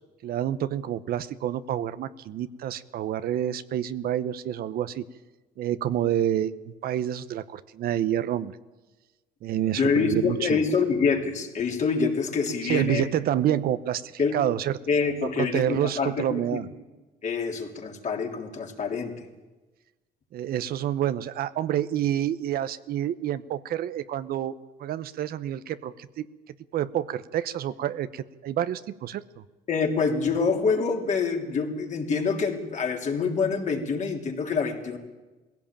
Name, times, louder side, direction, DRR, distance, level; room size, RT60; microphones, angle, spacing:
voice 1, 0.2-5.0 5.6-8.5 9.4-10.6 12.6-14.8 15.4-16.7 20.3-24.5 24.8-26.3 26.7-29.2, right 11 dB, 65° right, 13 dB, 0.9 m, -28 dB
voice 2, 9.8-13.1 14.2-14.3 14.9-16.6 17.2-19.2 29.7-35.0, left 5 dB, 45° left, 2 dB, 3.3 m, -26 dB
20.0 x 16.5 x 8.9 m, 1.2 s
cardioid pair, 110°, 17 cm